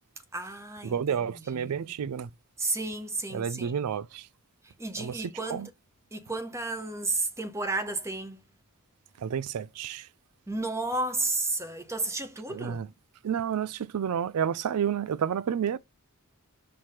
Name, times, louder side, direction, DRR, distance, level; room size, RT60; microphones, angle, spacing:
voice 1, 0.3-0.9 1.5-1.8 2.6-3.8 4.8-5.6 6.1-8.4 10.5-12.8, right 2 dB, 15° right, 1.1 m, -32 dB
voice 2, 0.8-2.3 3.3-4.3 5.0-5.7 9.2-10.1 12.5-12.9 13.2-15.8, right 8 dB, 90° right, 0.4 m, -30 dB
5.9 x 3.1 x 5.6 m
head